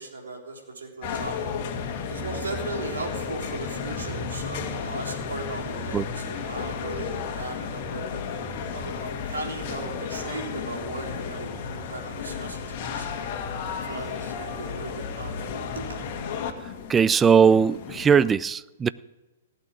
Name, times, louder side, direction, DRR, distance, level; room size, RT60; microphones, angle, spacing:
voice 1, 0.0-1.5 2.1-8.2 8.7-13.3 13.8-16.0, right 3 dB, 70° right, 1 dB, 3.8 m, -37 dB
sound 1, 1.0-18.3, left 6 dB, 40° left, 2.0 m, -33 dB
voice 2, 16.9-18.9, right 6 dB, 15° right, 18 dB, 0.4 m, -19 dB
16.0 x 8.6 x 9.0 m, 1.1 s
figure-of-eight pair, 115°, 0 cm